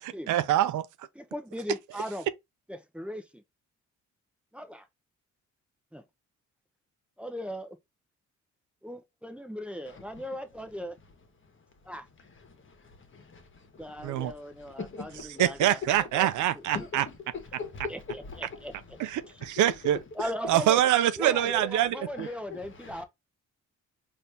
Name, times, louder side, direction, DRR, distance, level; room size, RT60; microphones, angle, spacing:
voice 1, 0.3-0.9 14.0-14.3 15.4-17.1 19.0-20.0 20.5-22.3, right 12 dB, 75° right, 0.5 m, -25 dB
voice 2, 1.1-2.3 2.7-3.4 4.5-4.9 5.9-6.0 7.2-7.8 8.8-11.0 11.9-12.1 13.8-16.3 16.5-16.9 17.9-19.0 20.1-20.8 21.2-23.0, equal, 5° right, 0.7 m, -38 dB
voice 3, 13.1-13.8 14.2-14.3 14.8-15.5 16.7-18.2 19.2-19.5 21.9-23.0, left 4 dB, 40° left, 1.3 m, -41 dB
4.2 x 2.7 x 3.3 m
cardioid pair, 90°, 30 cm